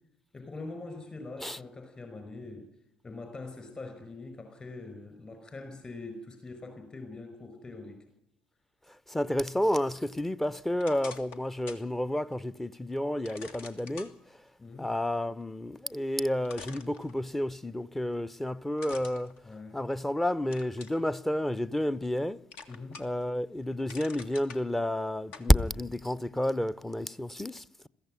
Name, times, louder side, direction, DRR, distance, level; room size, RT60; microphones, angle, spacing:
voice 1, 0.3-2.7 3.0-8.0 14.6-14.9 19.4-19.8 22.7-23.0, left 3 dB, 30° left, 5.1 m, -43 dB
voice 2, 9.1-14.1 14.8-19.4 19.7-22.4 23.0-27.9, left 1 dB, 10° left, 0.8 m, -30 dB
sound 1, 10.8-11.9 12.3-12.4 13.3-14.1 15.9-16.0 16.5-17.5 18.8-20.1 20.5-21.0 21.5-22.2 22.5-23.2 23.6-24.6 25.3-25.5, left 4 dB, 60° left, 1.9 m, -46 dB
22.0 x 15.5 x 9.8 m
figure-of-eight pair, 50°, 3 cm